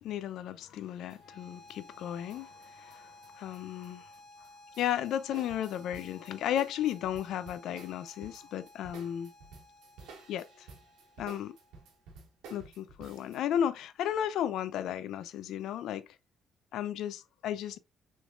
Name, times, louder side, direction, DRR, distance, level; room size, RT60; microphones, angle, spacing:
voice 1, 0.0-4.1 4.8-9.3 10.3-10.7 11.2-11.5 12.5-16.1 16.7-17.8, left 10 dB, 80° left, 0.5 m, -34 dB
sound 1, 0.7-1.4 1.7-4.2 4.4-13.4, right 4 dB, 90° right, 1.3 m, -53 dB
sound 2, 1.1-12.1, left 2 dB, 55° left, 1.0 m, -56 dB
6.3 x 3.3 x 2.4 m
cardioid pair, 90°, 0 cm